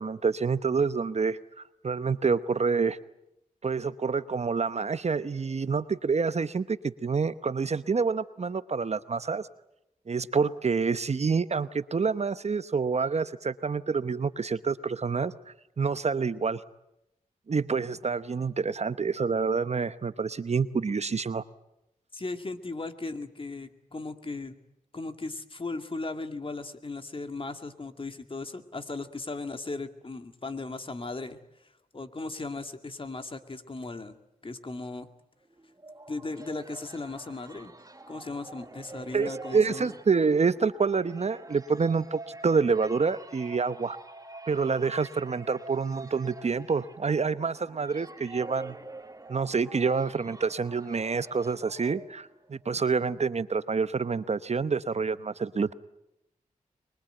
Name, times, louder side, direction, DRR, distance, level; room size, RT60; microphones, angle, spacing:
voice 1, 0.0-1.4 1.8-3.0 3.6-9.5 10.1-15.3 15.8-16.6 17.5-21.4 39.1-44.0 44.5-48.8 49.3-55.7, right 5 dB, 50° right, 14 dB, 0.9 m, -27 dB
voice 2, 22.1-24.5 24.9-31.4 31.9-34.2 34.4-35.1 36.1-37.7 38.1-40.0, left 3 dB, 40° left, 8 dB, 2.2 m, -37 dB
sound 1, 35.5-52.5, right 2 dB, 25° right, 1.7 m, -46 dB
24.5 x 22.5 x 9.0 m, 0.86 s
cardioid pair, 60°, 15 cm